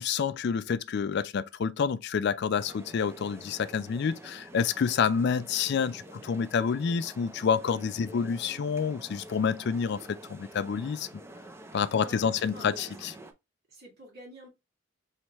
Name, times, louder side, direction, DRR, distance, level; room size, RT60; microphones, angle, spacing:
voice 1, 0.0-10.0 10.3-11.1 11.7-13.1, left 6 dB, 60° left, 0.4 m, -28 dB
sound 1, 2.6-13.3, right 1 dB, 15° right, 0.6 m, -48 dB
voice 2, 12.0-13.0 13.7-14.5, right 1 dB, 55° right, 1.9 m, -49 dB
4.7 x 3.2 x 3.0 m
head